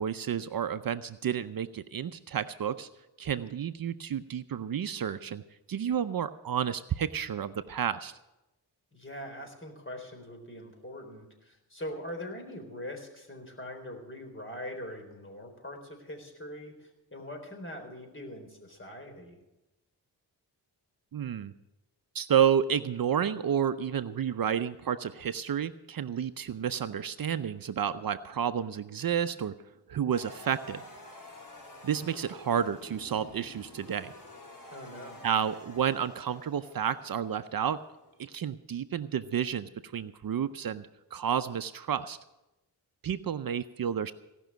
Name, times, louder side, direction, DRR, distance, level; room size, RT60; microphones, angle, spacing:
voice 1, 0.0-2.9 3.2-5.4 5.7-8.1 21.1-21.5 22.1-29.5 29.9-30.8 31.8-34.1 35.2-37.8 38.2-42.2 43.0-44.1, right 8 dB, 55° right, 12 dB, 0.7 m, -30 dB
voice 2, 8.9-19.4 34.7-35.2, left 1 dB, 30° left, 4 dB, 4.0 m, -42 dB
sound 1, 30.1-38.3, left 1 dB, 50° left, 5.0 m, -49 dB
17.5 x 6.2 x 9.2 m, 0.97 s
cardioid pair, 60°, 41 cm